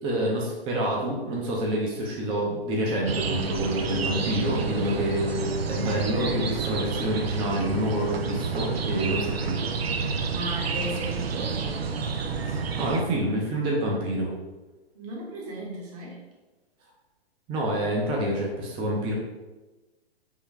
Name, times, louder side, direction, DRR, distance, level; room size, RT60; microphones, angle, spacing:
voice 1, 0.0-9.6 12.5-14.3 17.5-19.1, right 1 dB, 15° right, -2 dB, 0.6 m, -27 dB
sound 1, 3.1-13.0, right 5 dB, 70° right, 0.6 m, -29 dB
voice 2, 10.0-11.9 14.9-16.2, equal, 35° right, -2 dB, 1.2 m, -36 dB
3.7 x 3.0 x 4.5 m, 1.2 s
figure-of-eight pair, 120°, 32 cm